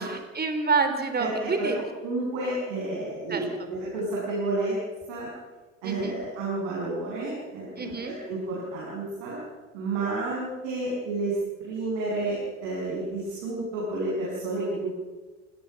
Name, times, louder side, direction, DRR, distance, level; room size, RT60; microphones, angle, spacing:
voice 1, 0.0-1.8 3.3-3.4 5.8-6.2 7.8-8.1, right 4 dB, 25° right, 7 dB, 4.0 m, -27 dB
voice 2, 1.2-1.7 2.0-4.8 5.1-5.3 5.8-9.4 9.7-15.0, right 2 dB, 70° right, -5 dB, 7.5 m, -30 dB
28.5 x 20.0 x 5.9 m, 1.3 s
hypercardioid pair, 65°, 38 cm